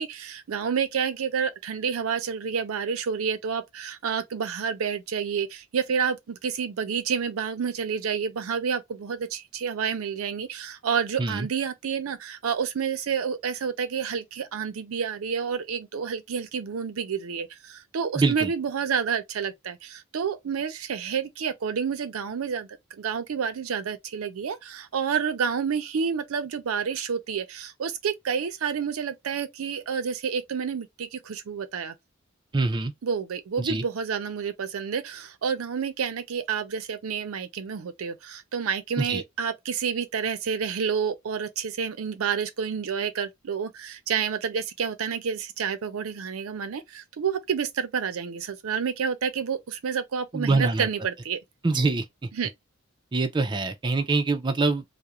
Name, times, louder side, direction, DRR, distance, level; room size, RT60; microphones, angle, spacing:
voice 1, 0.0-22.7 23.0-31.9 33.0-51.4 52.3-52.5, right 6 dB, 90° right, 0.5 m, -29 dB
voice 2, 18.2-18.5 32.5-32.9 33.6-33.8 39.0-39.2 50.3-50.9 51.6-52.0 53.1-54.8, right 3 dB, 20° right, 0.4 m, -24 dB
2.4 x 2.1 x 2.8 m
head